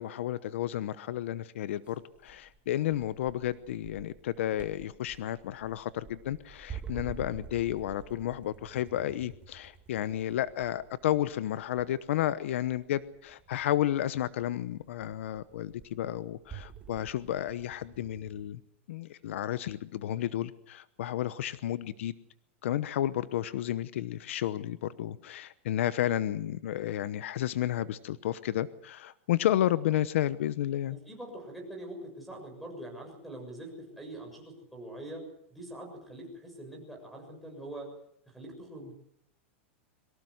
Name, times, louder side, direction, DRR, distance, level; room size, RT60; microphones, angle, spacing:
voice 1, 0.0-18.6 18.9-22.1 22.6-31.0, left 12 dB, 75° left, 15 dB, 1.0 m, -32 dB
sound 1, 1.8-18.5, right 7 dB, 15° right, 2.1 m, -49 dB
voice 2, 30.9-35.2 35.5-37.9 38.3-38.9, right 1 dB, ahead, -1 dB, 7.1 m, -44 dB
23.0 x 18.5 x 8.0 m, 0.74 s
supercardioid pair, 155°, 7 cm